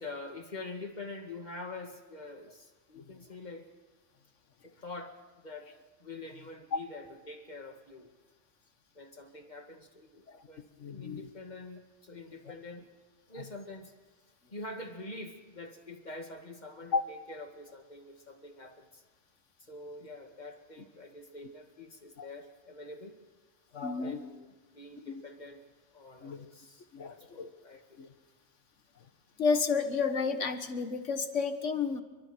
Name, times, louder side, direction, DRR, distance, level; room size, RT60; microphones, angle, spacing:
voice 1, 0.0-3.7 4.6-5.7 6.0-8.1 8.9-12.9 13.3-13.9 14.5-19.0 19.6-23.2 24.0-24.5 24.7-25.7 25.9-28.0, left 2 dB, 35° left, 4 dB, 2.3 m, -46 dB
voice 2, 10.8-11.3 16.9-17.0 22.2-22.3 23.7-24.2 25.1-25.2 26.2-26.5 26.9-27.5 28.0-28.1 29.4-32.0, left 5 dB, 75° left, 8 dB, 1.8 m, -31 dB
29.5 x 23.5 x 4.5 m, 1.3 s
omnidirectional pair, 1.3 m